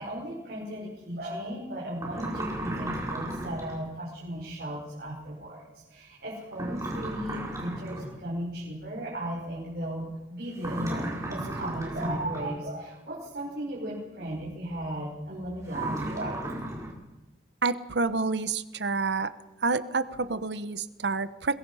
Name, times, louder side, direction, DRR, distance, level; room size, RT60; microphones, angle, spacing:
voice 1, 0.0-16.5, right 1 dB, 60° right, -5 dB, 5.9 m, -36 dB
sound 1, 2.0-3.8 6.5-8.2 10.6-12.5 15.7-16.9, right 1 dB, 20° right, 5.0 m, -35 dB
voice 2, 17.6-19.3 19.6-21.6, right 4 dB, 75° right, 13 dB, 1.1 m, -28 dB
22.5 x 22.0 x 5.7 m, 1.1 s
head